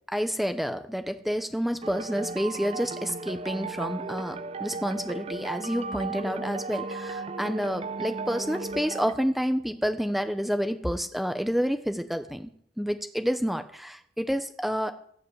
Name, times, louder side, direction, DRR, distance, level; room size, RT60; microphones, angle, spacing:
voice 1, 0.1-12.5 12.8-14.9, equal, ahead, 8 dB, 0.8 m, -29 dB
sound 1, 1.8-9.1, right 3 dB, 30° right, 0.5 m, -35 dB
17.0 x 5.7 x 8.1 m, 0.65 s
head